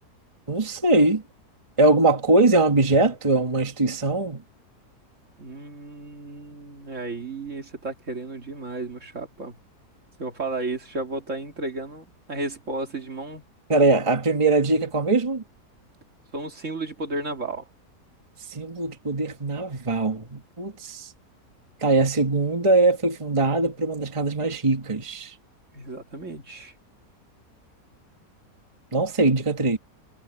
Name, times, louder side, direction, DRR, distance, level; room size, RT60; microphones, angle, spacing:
voice 1, 0.5-1.2 1.8-4.4 13.7-15.4 18.5-21.1 21.8-25.3 28.9-29.8, right 2 dB, 20° right, 1.7 m, -21 dB
voice 2, 5.4-9.6 10.2-13.4 16.3-17.6 25.7-26.7, right 2 dB, 50° right, 2.7 m, -33 dB
omnidirectional pair, 1.7 m